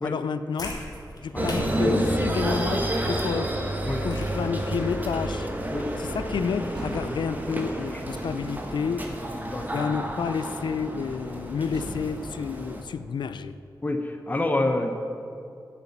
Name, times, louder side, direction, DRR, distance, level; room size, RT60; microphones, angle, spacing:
voice 1, 0.0-0.7 1.2-3.6 4.0-5.5 6.0-9.1 9.7-13.6, left 6 dB, 85° left, 13 dB, 0.4 m, -30 dB
sound 1, 0.5-6.5, left 1 dB, 55° left, 1.7 m, -42 dB
sound 2, 1.4-12.8, right 1 dB, 20° right, 1.2 m, -30 dB
sound 3, 6.7-7.4 8.1-8.7 9.3-9.6 9.9-10.0 11.7-11.9, right 1 dB, 80° right, 2.4 m, -40 dB
voice 2, 9.3-9.9 13.8-14.9, left 2 dB, 20° left, 5 dB, 0.8 m, -27 dB
8.5 x 6.9 x 7.2 m, 2.6 s
wide cardioid pair, 85°, 8 cm